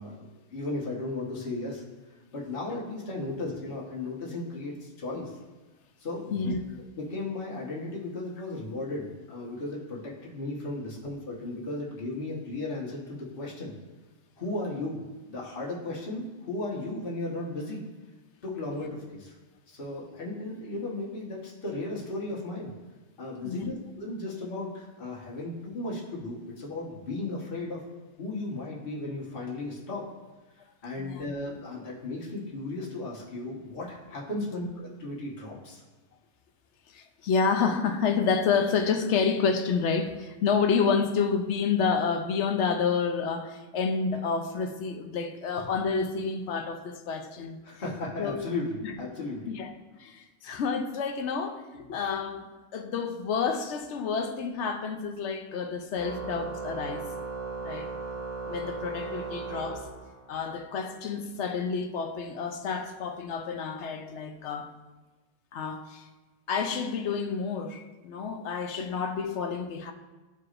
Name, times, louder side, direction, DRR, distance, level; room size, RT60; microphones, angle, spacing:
voice 1, 0.0-1.8 2.3-5.3 6.0-6.5 7.0-13.7 14.4-15.0 15.3-17.8 18.4-19.3 19.7-22.7 23.2-27.8 28.2-30.0 30.8-35.8 47.6-49.5, left 2 dB, 50° left, 1.5 m, -35 dB
voice 2, 31.0-31.3 36.9-47.6 48.2-48.5 48.8-48.9 49.5-49.7 50.0-57.1 57.6-57.9 58.5-59.9 60.3-64.7 65.5-66.1 66.5-69.9, left 5 dB, 70° left, 1.0 m, -29 dB
Organ, 55.9-60.5, right 4 dB, 70° right, 2.4 m, -37 dB
13.0 x 4.8 x 2.5 m
omnidirectional pair, 1.2 m